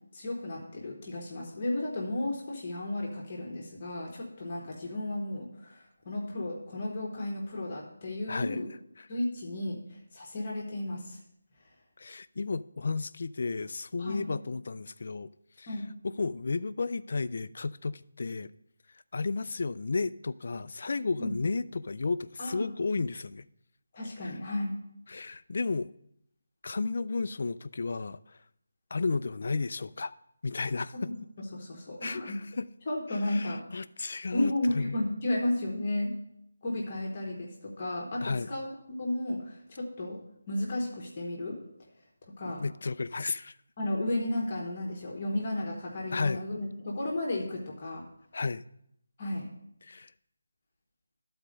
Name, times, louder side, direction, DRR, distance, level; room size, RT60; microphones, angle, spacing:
voice 1, 0.1-8.7 9.1-11.2 14.0-14.2 15.7-15.9 21.2-21.3 22.4-22.7 23.9-24.7 30.9-32.4 32.9-33.6 34.3-36.1 36.6-41.6 42.3-42.6 43.8-48.0 49.2-49.5, left 1 dB, 30° left, 1.3 m, -33 dB
voice 2, 8.3-8.6 9.0-9.1 12.0-15.3 15.6-15.7 16.0-18.5 19.1-23.5 24.2-24.3 25.1-25.9 26.6-28.4 28.9-30.1 30.4-31.1 32.0-32.7 33.2-35.0 38.2-38.5 42.5-43.6 46.1-46.4 48.3-48.6 49.8-50.1, left 4 dB, 45° left, 0.3 m, -33 dB
11.0 x 4.3 x 5.1 m
figure-of-eight pair, 175°, 0 cm